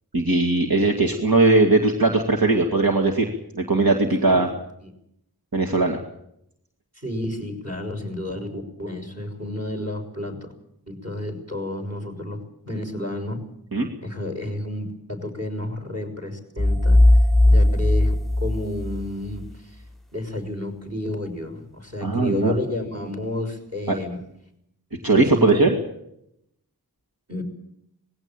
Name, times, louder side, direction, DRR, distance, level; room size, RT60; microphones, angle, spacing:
voice 1, 0.1-3.3 3.6-4.5 5.5-6.0 13.7-13.9 22.0-22.5 23.9-24.0 25.0-25.7, right 2 dB, 70° right, 1 dB, 2.4 m, -19 dB
voice 2, 7.0-10.5 10.9-12.4 12.6-13.4 14.0-17.0 17.4-19.8 20.1-24.2 25.3-25.7 27.3-27.4, left 1 dB, 45° right, 6 dB, 6.1 m, -31 dB
sound 1, 16.6-19.4, left 1 dB, ahead, 0.8 m, -17 dB
20.0 x 17.0 x 9.0 m, 0.77 s
wide cardioid pair, 45°, 37 cm